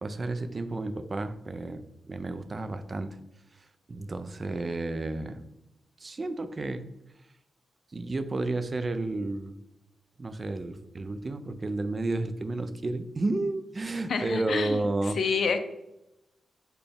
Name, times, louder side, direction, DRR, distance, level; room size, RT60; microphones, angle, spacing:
voice 1, 0.0-3.2 3.9-5.4 6.0-6.8 7.9-9.5 10.2-15.2, right 2 dB, 40° right, 10 dB, 0.3 m, -31 dB
voice 2, 14.1-14.8 15.2-15.6, left 5 dB, 70° left, 8 dB, 0.4 m, -27 dB
4.1 x 2.2 x 3.3 m, 0.88 s
cardioid pair, 70°, 0 cm